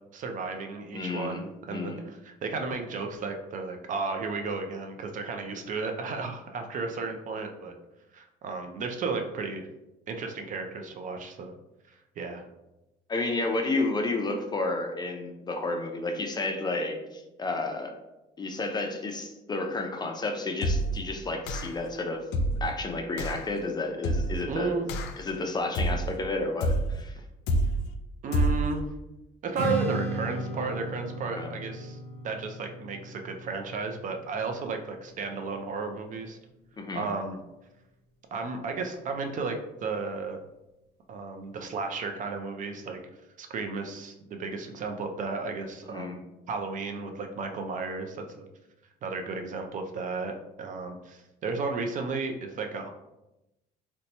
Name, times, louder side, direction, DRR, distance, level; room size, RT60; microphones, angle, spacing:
voice 1, 0.1-7.7 8.1-9.7 10.1-11.5 12.2-12.4 24.5-24.9 28.2-28.8 29.4-32.0 32.2-36.4 36.9-37.4 38.3-40.4 41.1-43.0 43.4-48.4 49.0-52.9, right 4 dB, 50° right, 5 dB, 0.5 m, -33 dB
voice 2, 0.9-1.4 1.7-2.0 13.1-17.9 18.4-22.3 22.6-24.8 25.2-27.2 31.4-31.5 36.8-37.1 45.8-46.2, left 2 dB, 25° left, 4 dB, 0.4 m, -31 dB
sound 1, 20.6-21.0 21.5-21.9 22.3-22.7 23.2-23.5 24.0-24.5 24.9-25.3 25.7-26.2 26.6-27.0 27.5-27.9 28.3-28.7, right 1 dB, 90° left, 0.4 m, -27 dB
Strum, 29.5-35.8, right 1 dB, 85° right, 1.1 m, -36 dB
2.8 x 2.2 x 4.0 m, 0.95 s
cardioid pair, 110°, 17 cm